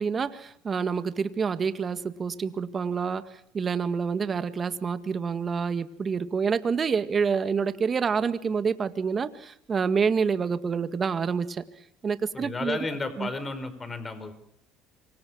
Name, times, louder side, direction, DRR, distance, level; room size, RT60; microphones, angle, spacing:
voice 1, 0.0-3.3 3.5-11.6 12.0-12.8 13.2-13.3, right 6 dB, 35° right, 11 dB, 1.8 m, -27 dB
voice 2, 12.3-14.3, left 3 dB, 25° left, 12 dB, 4.6 m, -33 dB
27.0 x 24.5 x 6.3 m, 0.67 s
supercardioid pair, 85°, 0 cm